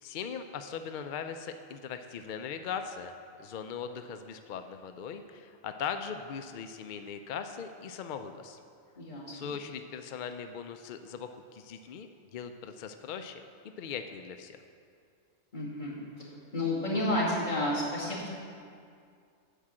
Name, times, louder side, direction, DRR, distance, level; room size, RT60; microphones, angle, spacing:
voice 1, 0.0-8.6 9.3-13.4 13.8-14.6, left 7 dB, 75° left, 7 dB, 0.4 m, -39 dB
voice 2, 9.0-9.5 15.5-16.0 16.5-18.3, left 1 dB, 35° left, -7 dB, 2.4 m, -31 dB
10.0 x 4.9 x 7.5 m, 2.3 s
omnidirectional pair, 1.4 m